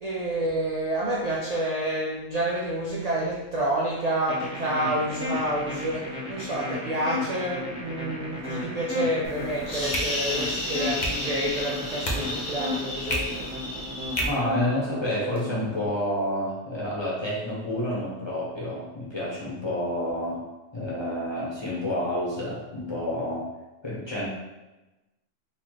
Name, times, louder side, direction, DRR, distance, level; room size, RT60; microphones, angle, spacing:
voice 1, 0.0-13.5, right 1 dB, 60° right, -4 dB, 0.4 m, -29 dB
sound 1, 4.3-15.9, left 2 dB, 5° right, 0.7 m, -34 dB
sound 2, 9.2-14.2, left 1 dB, 45° left, 0.7 m, -31 dB
voice 2, 14.2-20.4 20.7-23.5 23.8-24.3, left 1 dB, 25° left, -7 dB, 1.0 m, -29 dB
4.1 x 2.4 x 3.1 m, 1.1 s
omnidirectional pair, 1.3 m